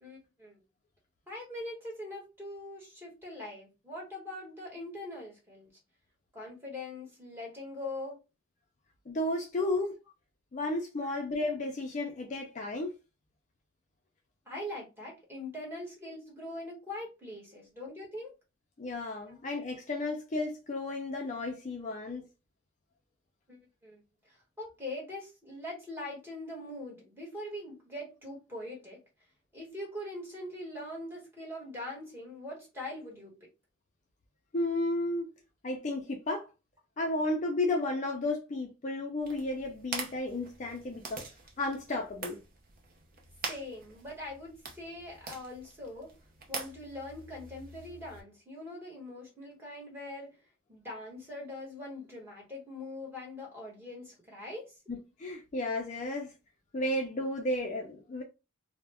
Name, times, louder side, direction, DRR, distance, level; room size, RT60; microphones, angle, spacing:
voice 1, 0.0-0.6 1.3-5.7 6.3-8.2 9.6-9.8 11.0-11.1 14.5-18.3 23.5-29.0 29.5-33.4 43.5-46.1 46.5-50.4 50.7-54.7, left 1 dB, 10° right, 1.2 m, -42 dB
voice 2, 9.1-10.0 10.5-12.9 18.8-22.3 34.5-35.3 35.6-36.5 37.0-41.2 41.6-42.4 54.9-56.3 56.7-58.2, left 2 dB, 35° left, 0.4 m, -33 dB
sound 1, 39.2-48.2, right 4 dB, 45° right, 0.6 m, -44 dB
2.3 x 2.1 x 3.4 m
head